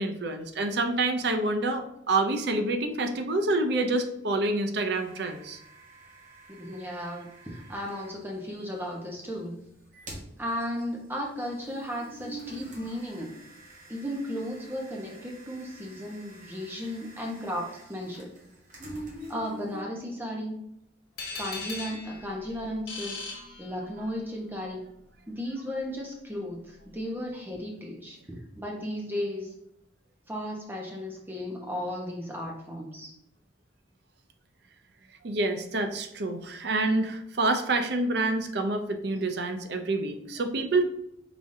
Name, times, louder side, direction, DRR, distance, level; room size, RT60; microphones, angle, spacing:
voice 1, 0.0-5.6 35.2-40.8, right 2 dB, 60° right, 6 dB, 0.5 m, -27 dB
sound 1, 4.9-8.1 9.8-19.8, right 1 dB, 45° right, 1.2 m, -46 dB
voice 2, 6.5-9.6 10.4-13.4 13.9-18.3 19.3-20.6 21.4-23.2 23.6-24.9 25.3-29.5 30.3-33.1, equal, 10° right, -1 dB, 0.9 m, -35 dB
sound 2, 21.2-24.2, left 3 dB, 60° left, 1.2 m, -39 dB
5.0 x 3.5 x 2.6 m, 0.80 s
head